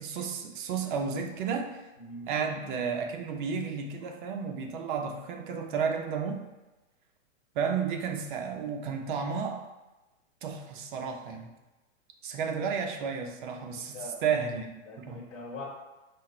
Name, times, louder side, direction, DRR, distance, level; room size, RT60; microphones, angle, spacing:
voice 1, 0.0-1.8 2.3-6.4 7.6-9.6 10.4-11.5 12.2-14.7 15.0-15.2, right 6 dB, 40° right, 3 dB, 0.6 m, -32 dB
voice 2, 14.9-15.6, left 2 dB, 65° left, -4 dB, 1.4 m, -42 dB
4.7 x 2.5 x 4.2 m, 1.1 s
hypercardioid pair, 145°, 38 cm